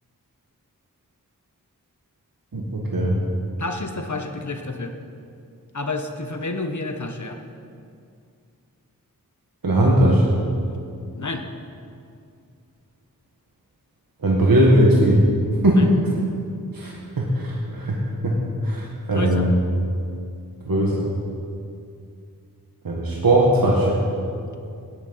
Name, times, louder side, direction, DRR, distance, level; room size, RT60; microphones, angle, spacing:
voice 1, 2.5-3.2 9.6-10.4 14.2-15.3 15.6-16.1 16.7-19.5 20.7-21.1 22.8-24.0, right 1 dB, 80° right, -3 dB, 1.9 m, -19 dB
voice 2, 3.6-4.9 5.7-7.4 11.1-11.4 15.7-15.9 19.1-19.5, left 2 dB, 55° left, 5 dB, 1.4 m, -30 dB
16.5 x 10.5 x 5.8 m, 2.4 s
wide cardioid pair, 60°, 34 cm